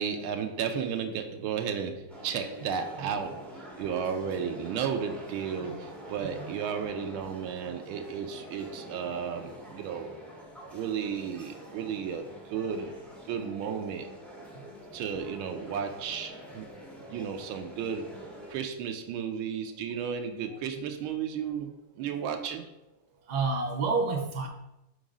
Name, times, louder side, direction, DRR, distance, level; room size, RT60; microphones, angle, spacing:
voice 1, 0.0-10.1 10.7-12.9 13.2-14.1 14.9-16.7 17.1-22.7, right 7 dB, 80° right, 1.4 m, -34 dB
sound 1, 2.1-18.5, equal, ahead, 0.4 m, -46 dB
voice 2, 23.2-24.5, right 4 dB, 60° right, 1.1 m, -29 dB
4.9 x 3.8 x 5.2 m
omnidirectional pair, 2.3 m